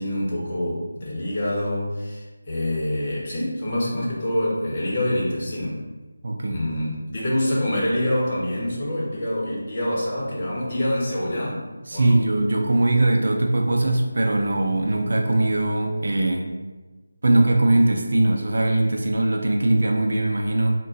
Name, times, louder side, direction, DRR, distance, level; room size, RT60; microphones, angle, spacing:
voice 1, 0.0-5.8 6.5-11.6 11.9-12.2, left 1 dB, 30° left, -5 dB, 1.0 m, -26 dB
voice 2, 6.2-6.7 11.9-16.5 17.2-20.7, right 2 dB, 60° right, 2 dB, 0.4 m, -21 dB
3.7 x 2.2 x 3.8 m, 1.2 s
figure-of-eight pair, 170°, 0 cm